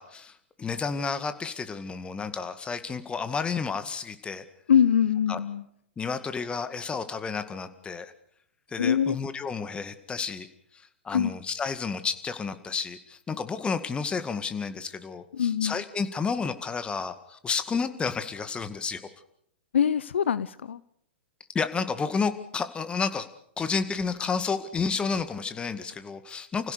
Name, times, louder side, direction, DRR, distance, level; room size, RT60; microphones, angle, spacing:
voice 1, 0.0-4.4 5.3-5.4 6.0-8.1 8.7-10.5 10.7-19.0 21.5-23.3 23.6-26.7, left 5 dB, 15° left, 10 dB, 2.0 m, -31 dB
voice 2, 4.7-5.6 8.8-9.2 11.1-11.3 15.3-15.8 19.7-20.8, left 8 dB, 70° left, 17 dB, 0.8 m, -23 dB
30.0 x 16.5 x 6.8 m, 0.70 s
figure-of-eight pair, 105°, 6 cm